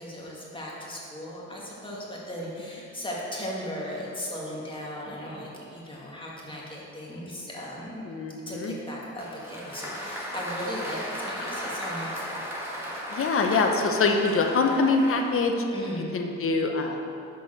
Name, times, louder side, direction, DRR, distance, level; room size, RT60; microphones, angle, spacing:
voice 1, 0.0-8.0 8.5-12.4 15.7-16.1, equal, 15° left, -5 dB, 1.9 m, -37 dB
voice 2, 8.0-8.7 13.1-15.5 16.1-17.0, left 4 dB, 45° left, 3 dB, 0.9 m, -24 dB
Applause, 9.2-15.5, equal, 10° right, 1.8 m, -36 dB
6.4 x 5.3 x 6.5 m, 2.7 s
cardioid pair, 90°, 30 cm